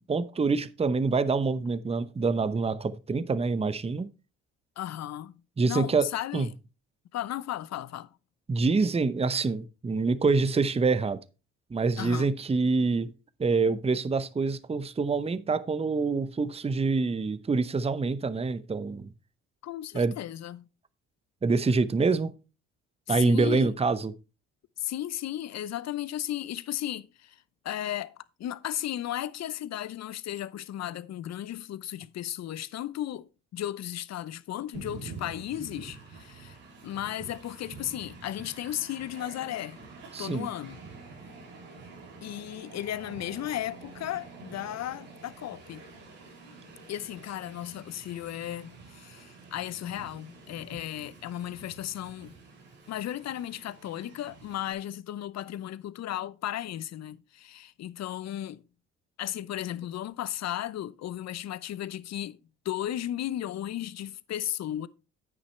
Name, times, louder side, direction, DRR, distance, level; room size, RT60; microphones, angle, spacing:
voice 1, 0.1-4.1 5.6-6.5 8.5-11.2 11.7-13.1 13.4-19.1 19.9-20.2 21.4-22.3 23.1-24.1 40.1-40.5, right 4 dB, 20° right, 0.8 m, -26 dB
voice 2, 4.8-5.3 5.6-6.5 7.1-8.1 12.0-12.3 19.6-20.6 23.1-23.7 24.8-28.1 28.4-36.6 36.8-39.8 40.2-40.8 42.2-45.8 46.9-52.3 52.9-58.6 59.2-62.4 62.6-64.9, left 12 dB, 55° left, 0.8 m, -35 dB
Train, 34.7-54.7, right 4 dB, 80° right, 3.8 m, -48 dB
9.7 x 8.7 x 3.2 m
hypercardioid pair, 55°, 32 cm